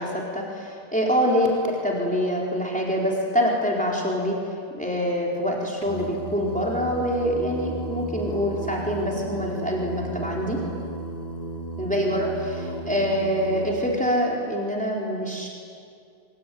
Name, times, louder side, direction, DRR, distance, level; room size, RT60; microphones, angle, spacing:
voice 1, 0.0-1.5 1.8-4.3 4.8-10.6 11.8-15.5, equal, 5° left, -3 dB, 4.4 m, -25 dB
Singing, 5.8-13.7, right 1 dB, 40° left, 2.5 m, -34 dB
25.5 x 25.0 x 9.5 m, 2.3 s
omnidirectional pair, 1.0 m